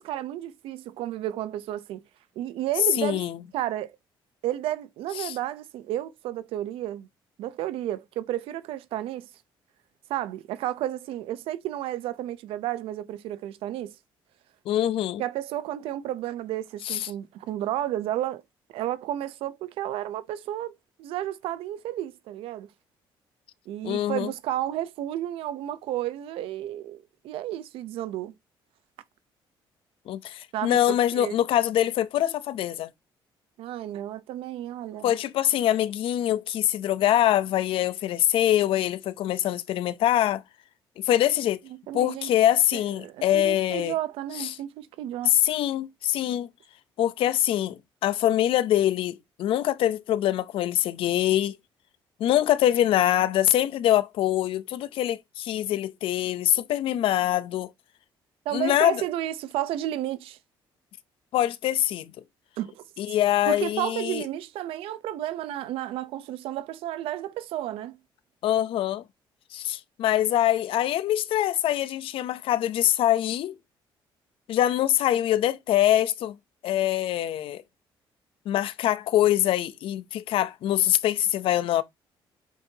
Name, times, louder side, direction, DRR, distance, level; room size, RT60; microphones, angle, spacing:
voice 1, 0.0-2.0 2.4-3.2 3.5-4.0 4.4-7.1 7.4-9.3 10.1-13.9 15.2-18.4 18.7-20.7 21.0-22.7 23.7-28.3 30.5-31.4 33.6-35.1 41.9-42.3 42.7-45.4 58.4-60.4 62.6-62.9 63.5-68.0, right 13 dB, 90° right, 0.8 m, -32 dB
voice 2, 3.0-3.4 5.2-5.3 14.7-15.2 16.8-17.1 23.8-24.3 30.1-32.9 35.0-40.4 41.0-41.6 41.9-43.9 44.4-44.5 45.3-46.5 47.0-51.6 52.2-57.7 58.5-59.0 61.3-62.1 63.0-64.2 68.4-69.0 69.5-73.5 74.5-76.4 76.6-77.6 78.5-81.8, left 12 dB, 75° left, 0.7 m, -24 dB
8.0 x 4.6 x 2.8 m
cardioid pair, 125°, 9 cm